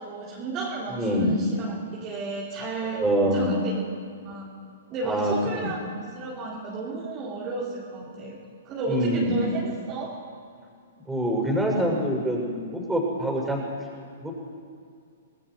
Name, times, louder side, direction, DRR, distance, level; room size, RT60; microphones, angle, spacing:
voice 1, 0.0-1.7 2.0-3.7 4.2-4.5 4.9-8.4 8.6-10.2, right 3 dB, 30° right, -6 dB, 4.1 m, -33 dB
voice 2, 0.9-1.4 2.9-3.6 5.0-5.7 8.9-9.4 11.1-12.5 12.7-13.6 14.2-14.3, equal, 5° right, -2 dB, 6.2 m, -25 dB
28.0 x 19.5 x 4.7 m, 2.3 s
figure-of-eight pair, 115°, 0 cm